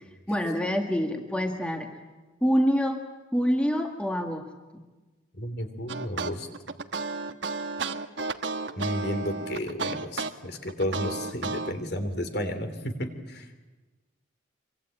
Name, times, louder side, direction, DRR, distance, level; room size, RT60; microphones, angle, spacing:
voice 1, 0.3-1.9 2.4-3.0 3.3-4.5, equal, 5° left, 3 dB, 1.8 m, -26 dB
voice 2, 5.3-6.5 8.8-13.5, equal, 55° left, 8 dB, 3.2 m, -32 dB
sound 1, 5.9-11.7, right 3 dB, 65° right, 1.3 m, -32 dB
25.5 x 24.0 x 8.9 m, 1.2 s
head